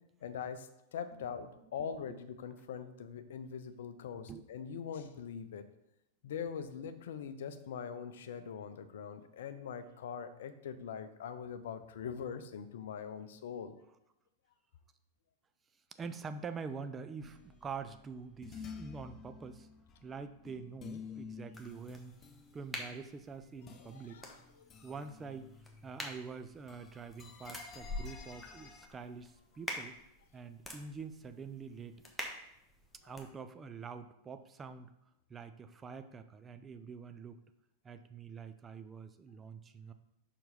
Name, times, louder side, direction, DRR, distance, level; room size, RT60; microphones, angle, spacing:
voice 1, 0.2-5.6 6.2-13.8 23.9-24.4 28.0-28.1 33.1-33.2, left 7 dB, 60° left, 11 dB, 0.5 m, -42 dB
voice 2, 1.8-2.2 4.3-4.4 15.9-19.7 20.0-22.2 22.5-24.2 24.8-25.5 25.8-30.0 30.3-32.3 33.0-34.9 35.3-37.4 37.8-39.9, right 5 dB, 20° right, 9 dB, 0.5 m, -46 dB
sound 1, 17.2-26.3 26.5-28.9, left 5 dB, 25° left, 0.7 m, -52 dB
sound 2, 21.5-33.3, left 1 dB, 5° left, 1.1 m, -47 dB
5.4 x 4.5 x 4.9 m, 0.84 s
figure-of-eight pair, 90°, 0 cm